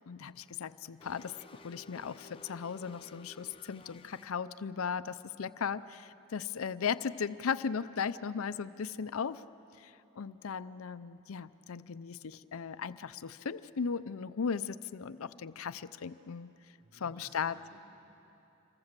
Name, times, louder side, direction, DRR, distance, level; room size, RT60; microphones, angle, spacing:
voice 1, 0.1-1.4 1.6-9.4 9.8-16.5 17.0-17.6, left 6 dB, 90° left, 14 dB, 0.5 m, -37 dB
sound 1, 1.0-4.2, left 3 dB, 25° left, 0.8 m, -54 dB
voice 2, 16.8-17.8, right 2 dB, 80° right, -1 dB, 3.2 m, -59 dB
27.5 x 24.0 x 7.5 m, 3.0 s
head